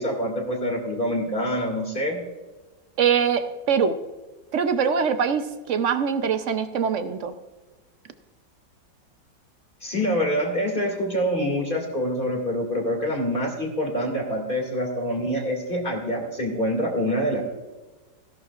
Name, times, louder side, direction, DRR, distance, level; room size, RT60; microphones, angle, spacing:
voice 1, 0.0-2.2 9.8-17.4, equal, 30° left, 1 dB, 2.3 m, -26 dB
voice 2, 3.0-4.0 4.5-7.3, right 6 dB, 65° right, 10 dB, 0.8 m, -23 dB
16.0 x 11.5 x 2.4 m, 1.2 s
omnidirectional pair, 2.0 m